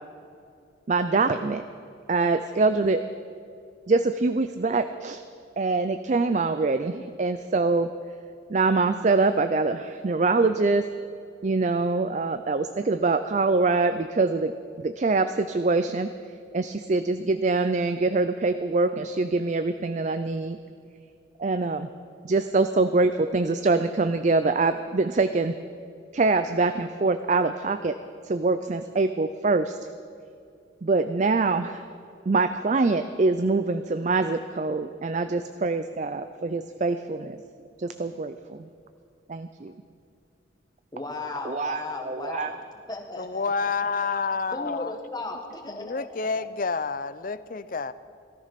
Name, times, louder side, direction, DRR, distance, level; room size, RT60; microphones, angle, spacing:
voice 1, 0.9-1.6 2.1-3.1 3.9-5.2 5.6-7.9 8.5-10.9 11.4-16.1 16.5-20.6 21.4-21.9 22.2-25.6 26.1-28.0 28.2-29.8 30.8-31.8 32.3-37.4 37.8-38.7 39.3-39.7 41.4-42.5, right 3 dB, 40° right, 10 dB, 0.4 m, -24 dB
voice 2, 40.9-42.6 42.9-43.7 44.5-46.1 46.3-46.5, left 2 dB, 20° left, 3 dB, 1.5 m, -36 dB
voice 3, 43.2-44.9 45.7-47.9, left 4 dB, 45° left, 15 dB, 0.5 m, -29 dB
18.0 x 13.5 x 5.9 m, 2.4 s
head